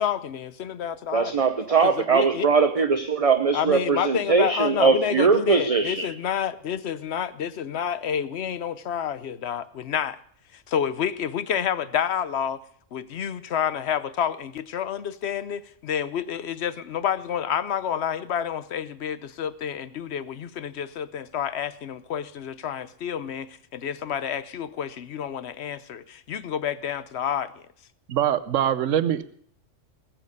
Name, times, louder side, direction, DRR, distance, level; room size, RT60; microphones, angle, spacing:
voice 1, 0.0-1.4 1.8-2.5 3.5-10.2 10.5-12.6 12.9-27.5, left 8 dB, 60° left, 15 dB, 1.0 m, -29 dB
voice 2, 1.1-6.1, right 5 dB, 35° right, 7 dB, 0.8 m, -21 dB
voice 3, 28.1-29.2, right 10 dB, 80° right, 12 dB, 1.1 m, -23 dB
20.0 x 7.6 x 6.6 m, 0.62 s
omnidirectional pair, 1.3 m